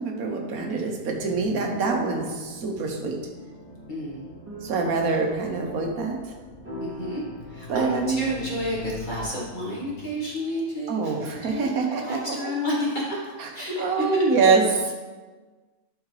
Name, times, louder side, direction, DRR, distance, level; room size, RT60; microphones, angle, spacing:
voice 1, 0.0-3.2 4.6-6.3 7.7-8.2 10.9-12.2 13.4-13.5 13.8-14.9, right 4 dB, 85° right, 2 dB, 1.5 m, -25 dB
sound 1, 1.0-10.1, left 2 dB, 80° left, 1.5 m, -44 dB
sound 2, 3.3-13.0, right 1 dB, 10° right, 2.0 m, -45 dB
voice 2, 3.9-4.3 4.9-5.3 6.8-7.2 7.5-14.1, equal, 35° left, -5 dB, 1.5 m, -31 dB
11.0 x 4.3 x 3.2 m, 1.3 s
omnidirectional pair, 1.5 m